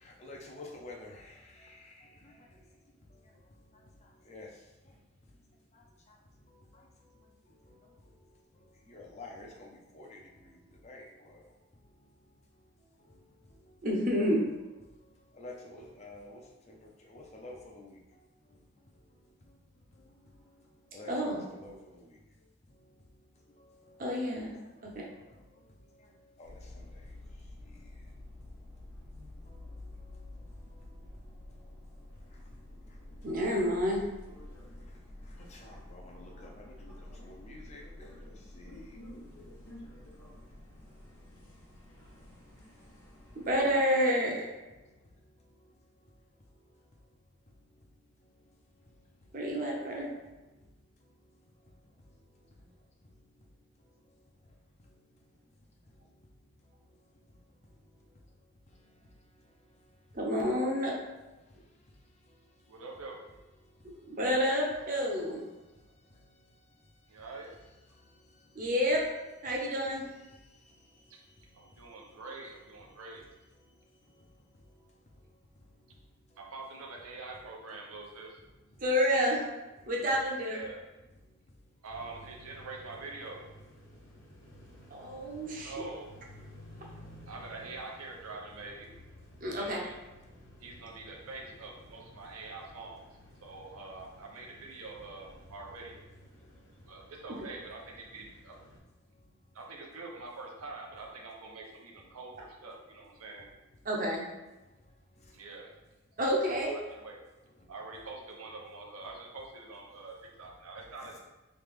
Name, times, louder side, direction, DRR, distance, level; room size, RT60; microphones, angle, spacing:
voice 1, 0.0-1.9 2.2-2.3 4.3-4.5 8.9-9.7 9.9-10.2 10.8-11.4 15.4-16.4 17.1-18.0 20.9-22.0 26.4-26.8 35.5-36.9 37.2-37.8 38.5-38.9, left 2 dB, 30° left, -1 dB, 0.5 m, -48 dB
voice 2, 13.8-14.4 21.1-21.4 24.0-24.6 24.8-25.0 33.2-34.0 43.4-44.5 49.3-50.1 60.1-61.0 64.1-65.4 68.5-69.0 69.4-70.0 78.8-79.4 79.9-80.6 84.9-85.9 89.4-89.8 103.9-104.2 106.2-106.8, equal, 40° right, -1 dB, 0.7 m, -29 dB
sound 1, 26.4-43.8, left 1 dB, 90° left, 0.9 m, -49 dB
voice 3, 62.7-63.2 67.1-67.8 71.1-71.2 71.5-73.3 76.4-78.4 80.4-80.8 81.8-83.5 85.6-86.1 87.3-88.9 89.5-89.9 90.6-93.0 93.4-96.0 96.9-98.6 99.5-103.4 105.3-105.7 106.2-107.2 107.7-111.2, right 3 dB, 85° right, 0 dB, 0.7 m, -45 dB
sound 2, 81.9-98.8, left 1 dB, 55° left, 0.9 m, -54 dB
3.1 x 2.9 x 3.6 m, 1.1 s
head